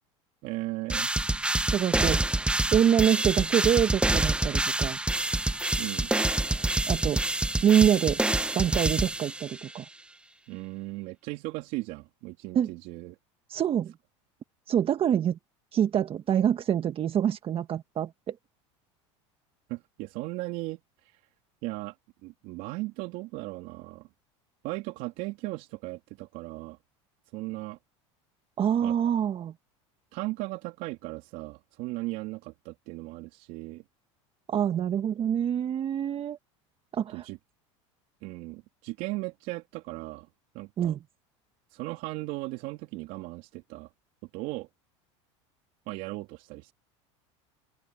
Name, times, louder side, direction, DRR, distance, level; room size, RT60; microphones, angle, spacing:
voice 1, 0.4-1.1 5.8-6.1 10.5-13.2 19.7-21.2 21.6-21.9 22.2-24.1 24.6-26.8 27.3-27.8 28.8-29.0 30.1-33.8 37.1-37.4 38.2-40.3 40.5-41.0 41.7-43.9 44.3-44.7 45.9-46.7, right 21 dB, 60° right, 3.0 m, -37 dB
sound 1, 0.9-9.7, right 2 dB, 5° right, 1.0 m, -27 dB
voice 2, 1.7-2.2 2.7-5.0 6.9-7.2 7.6-8.2 8.5-9.8 12.5-12.7 13.5-13.9 14.7-15.4 15.7-18.3 28.6-29.5 34.5-36.4 36.9-37.2 40.8-41.0, right 9 dB, 35° right, 1.6 m, -25 dB
open air
supercardioid pair, 105°, 16 cm